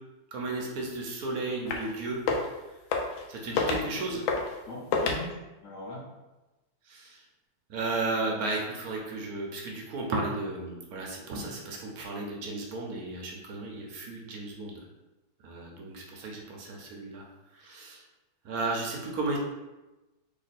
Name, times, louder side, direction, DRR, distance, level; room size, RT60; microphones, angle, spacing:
voice 1, 0.3-2.2 3.3-4.2 6.9-7.2 7.7-14.8 15.4-17.2 17.6-18.0 18.4-19.4, right 2 dB, 65° right, -1 dB, 1.0 m, -34 dB
sound 1, 1.7-1.9 2.2-2.5 2.9-3.3 3.6-3.9 4.3-4.6 4.9-5.2, left 4 dB, 80° left, 1.3 m, -28 dB
voice 2, 3.5-4.0 4.7-5.3 5.6-6.0, left 2 dB, 60° left, -5 dB, 1.2 m, -40 dB
3.4 x 2.9 x 4.1 m, 1.1 s
omnidirectional pair, 2.2 m